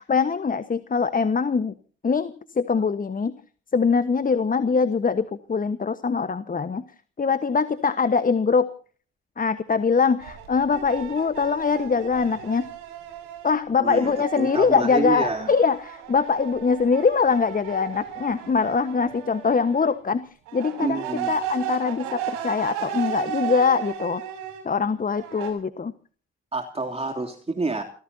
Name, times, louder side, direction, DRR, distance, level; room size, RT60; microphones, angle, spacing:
voice 1, 0.0-1.7 2.0-3.3 3.7-6.8 7.2-8.7 9.4-12.7 13.4-24.2 24.6-25.9, left 5 dB, 25° left, 12 dB, 1.3 m, -23 dB
sound 1, 10.2-13.6 14.0-19.9 20.5-24.6 25.1-25.5, right 10 dB, 75° right, 6.8 m, -35 dB
voice 2, 13.8-15.5 20.8-21.3 26.5-27.8, right 3 dB, 20° right, 3 dB, 3.1 m, -28 dB
29.0 x 16.5 x 2.8 m, 0.42 s
hypercardioid pair, 60°, 30 cm